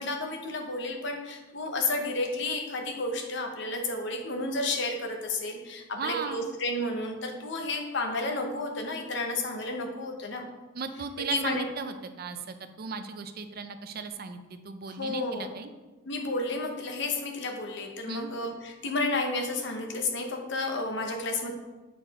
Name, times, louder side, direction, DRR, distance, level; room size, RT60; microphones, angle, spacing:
voice 1, 0.0-10.5 11.3-11.7 14.9-15.5 16.1-21.5, left 2 dB, 65° left, 3 dB, 0.9 m, -31 dB
voice 2, 5.9-6.5 10.7-15.7 18.1-18.3, right 5 dB, 50° right, 9 dB, 0.5 m, -36 dB
7.0 x 4.4 x 4.1 m, 1.2 s
head